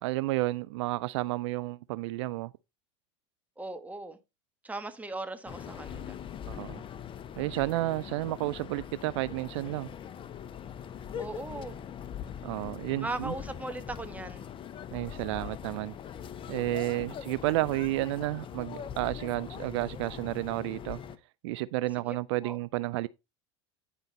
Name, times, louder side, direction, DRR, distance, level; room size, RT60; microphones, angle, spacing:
voice 1, 0.0-2.5 6.5-6.8 7.4-9.9 12.4-13.3 14.9-15.9 16.5-21.0 21.4-23.1, right 18 dB, 70° right, 0.4 m, -31 dB
voice 2, 3.6-4.2 4.6-6.2 11.2-11.8 13.0-14.5 22.1-22.2 22.4-22.6, right 2 dB, 10° right, 1.4 m, -38 dB
sound 1, 5.5-21.2, left 8 dB, 35° left, 0.8 m, -42 dB
10.0 x 5.1 x 4.1 m
hypercardioid pair, 90°, 15 cm